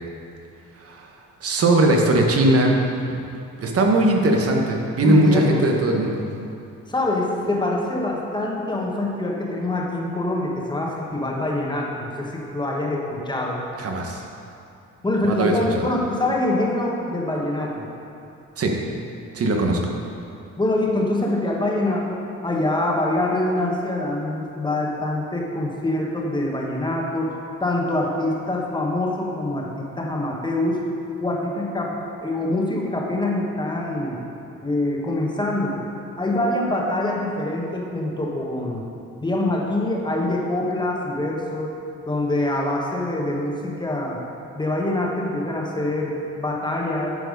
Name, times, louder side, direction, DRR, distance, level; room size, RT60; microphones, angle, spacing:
voice 1, 1.4-2.8 3.0-3.2 3.6-6.2 13.8-14.2 15.2-15.8 18.6-18.7 19.3-19.8, right 1 dB, 50° right, 1 dB, 1.3 m, -19 dB
voice 2, 5.0-5.6 6.9-13.6 15.0-17.9 20.6-27.3 27.6-30.8 31.2-34.2 34.6-35.7 36.2-38.8 39.2-41.7 42.1-44.2 44.5-47.2, left 1 dB, 15° left, -2 dB, 1.5 m, -25 dB
10.5 x 4.6 x 5.3 m, 2.6 s
cardioid pair, 90°, 30 cm